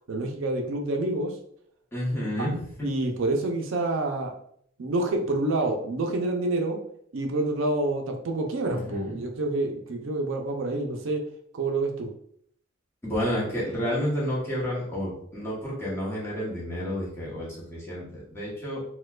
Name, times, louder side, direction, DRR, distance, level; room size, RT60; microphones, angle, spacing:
voice 1, 0.1-1.3 2.4-2.5 2.8-4.3 4.8-6.8 7.1-11.2 11.5-12.1, right 2 dB, 70° right, 3 dB, 0.5 m, -27 dB
voice 2, 1.9-2.9 8.7-9.2 13.0-18.8, equal, 15° left, -6 dB, 1.1 m, -30 dB
4.2 x 2.2 x 2.3 m, 0.67 s
head